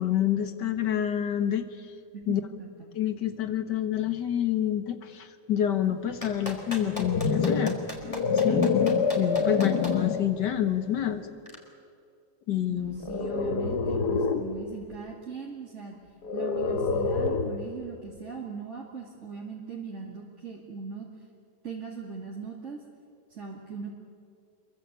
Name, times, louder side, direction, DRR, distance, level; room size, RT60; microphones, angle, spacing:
voice 1, 0.0-1.7 2.3-2.4 2.9-7.8 8.0-8.7 9.2-11.2 12.5-13.0, left 10 dB, 90° left, 9 dB, 2.1 m, -28 dB
voice 2, 2.1-2.9 9.4-9.8 12.7-16.0 16.3-21.1 21.6-22.8 23.3-23.9, right 5 dB, 45° right, -3 dB, 2.8 m, -39 dB
Clapping, 6.2-9.9 11.5-11.6, equal, 20° left, 3.6 m, -36 dB
sound 1, 6.7-10.3 11.0-11.2 13.0-14.5 16.2-17.7, left 5 dB, 70° left, 1.8 m, -26 dB
26.5 x 23.0 x 8.3 m, 2.4 s
omnidirectional pair, 1.8 m